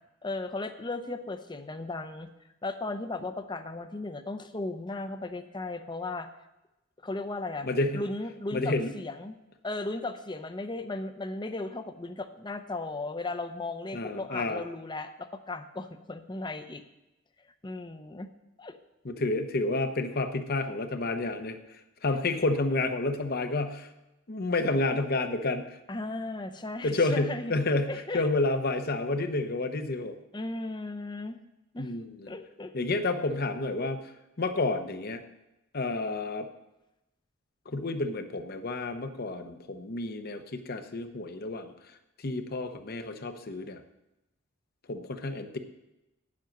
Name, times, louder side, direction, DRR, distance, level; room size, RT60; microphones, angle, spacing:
voice 1, 0.2-2.3 2.6-6.3 7.0-7.7 7.9-9.3 9.6-16.8 17.6-18.3 18.6-18.8 25.9-27.5 27.9-28.2 30.3-31.4 31.7-32.0 32.3-32.7, left 2 dB, 20° left, 9 dB, 0.6 m, -36 dB
voice 2, 7.6-8.0 8.5-8.9 13.9-14.6 19.0-21.6 22.0-23.9 24.3-25.7 26.8-30.1 31.8-32.3 32.7-34.1 34.4-35.2 35.7-36.5 37.7-41.7 42.2-43.8 44.9-45.6, left 2 dB, 50° left, 8 dB, 0.9 m, -30 dB
9.1 x 7.5 x 5.9 m, 0.92 s
head